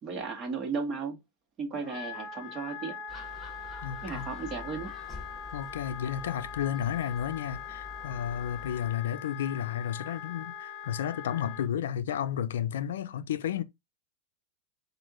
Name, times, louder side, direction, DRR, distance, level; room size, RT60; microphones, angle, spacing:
voice 1, 0.0-1.2 1.6-2.9 4.0-4.9, right 5 dB, 35° right, 1.6 m, -35 dB
Wind instrument woodwind instrument, 1.8-11.7, left 7 dB, 45° left, 0.8 m, -42 dB
Gull seagull, 3.1-8.9, left 3 dB, 5° right, 1.7 m, -47 dB
voice 2, 3.8-4.3 5.5-13.6, left 9 dB, 85° left, 0.4 m, -32 dB
6.1 x 2.7 x 3.0 m
hypercardioid pair, 110°, 0 cm